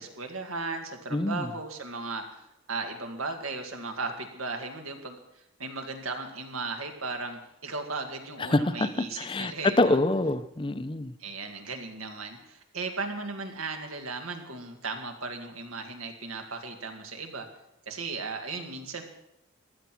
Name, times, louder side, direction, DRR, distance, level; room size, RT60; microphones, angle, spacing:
voice 1, 0.0-2.4 2.7-10.0 11.2-17.5 17.9-19.0, right 3 dB, 90° right, 5 dB, 2.0 m, -36 dB
voice 2, 1.1-1.5 8.5-8.9 9.2-9.5 9.8-11.1, left 2 dB, 25° left, 13 dB, 0.5 m, -25 dB
15.0 x 11.0 x 6.1 m, 0.85 s
head